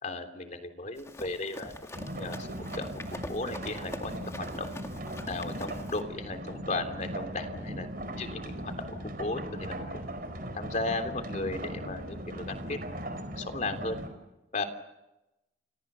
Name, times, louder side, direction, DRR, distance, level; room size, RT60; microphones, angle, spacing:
voice 1, 0.0-2.9 3.3-4.7 5.2-7.9 8.1-10.1 10.5-12.8 13.3-14.0 14.5-14.6, left 2 dB, 40° left, 7 dB, 3.3 m, -35 dB
Run, 1.0-6.0, left 1 dB, 15° left, 2.1 m, -43 dB
sound 1, 1.9-14.1, right 1 dB, 55° right, 4.6 m, -39 dB
29.0 x 26.0 x 7.0 m, 0.95 s
head